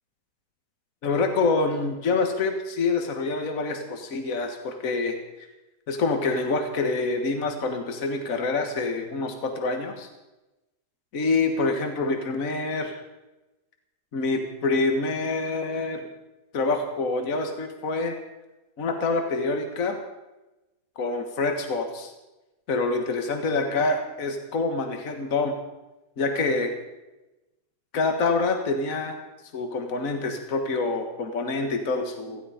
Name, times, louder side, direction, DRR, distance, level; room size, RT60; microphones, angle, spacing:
voice 1, 1.0-5.2 5.9-10.1 11.1-13.0 14.1-16.1 16.5-18.1 18.8-20.0 21.0-22.1 22.7-25.5 26.2-26.7 27.9-29.2 29.5-32.4, left 3 dB, 55° left, 5 dB, 2.0 m, -26 dB
17.0 x 15.5 x 5.1 m, 1.0 s
omnidirectional pair, 1.8 m